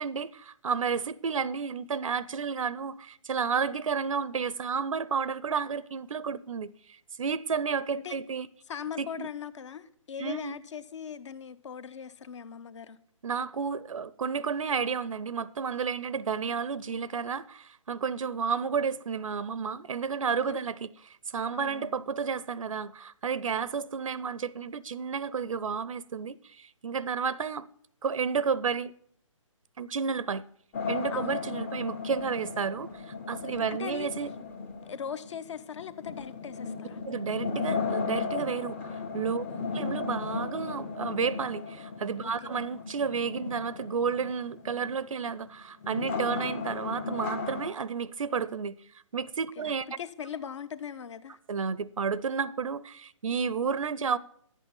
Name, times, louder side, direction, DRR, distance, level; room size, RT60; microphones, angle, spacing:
voice 1, 0.0-8.5 9.0-9.3 10.2-10.6 13.2-27.7 28.0-28.9 29.8-30.4 30.9-34.3 37.0-38.8 39.1-39.4 39.7-48.8 49.1-49.9 51.5-54.2, right 6 dB, 75° right, 0.5 m, -31 dB
voice 2, 8.7-13.0 20.5-20.6 21.5-22.0 31.1-31.5 33.7-34.1 34.8-37.0 39.5-39.7 42.4-42.5 49.6-51.4, left 7 dB, 60° left, 0.8 m, -40 dB
sound 1, 30.7-47.7, left 5 dB, 10° left, 0.5 m, -36 dB
11.0 x 8.3 x 5.3 m
hypercardioid pair, 150°, 17 cm